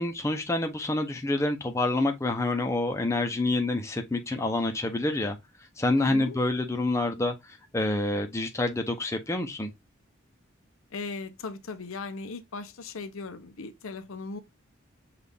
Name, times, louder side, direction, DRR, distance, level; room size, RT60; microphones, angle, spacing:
voice 1, 0.0-5.4 5.8-9.7, left 2 dB, 15° left, 0.5 m, -27 dB
voice 2, 6.0-6.4 10.9-14.4, left 4 dB, 85° left, 0.6 m, -37 dB
5.7 x 2.4 x 3.4 m
head